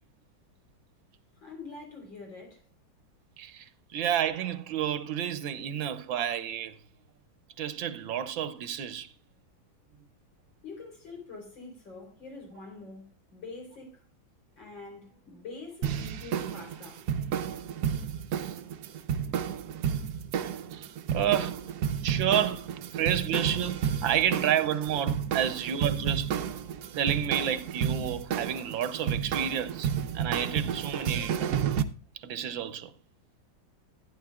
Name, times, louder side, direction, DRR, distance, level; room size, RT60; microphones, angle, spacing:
voice 1, 1.4-2.6 10.6-14.0 14.6-17.1, left 3 dB, 65° left, 4.7 m, -45 dB
voice 2, 3.9-6.7 7.6-9.1 20.7-21.5 22.0-22.7 22.9-26.3 27.0-29.9 30.1-31.4 32.2-32.9, right 9 dB, 80° right, 1.6 m, -30 dB
sound 1, 15.8-31.8, right 8 dB, 65° right, 1.1 m, -31 dB
14.5 x 9.8 x 2.3 m
omnidirectional pair, 2.2 m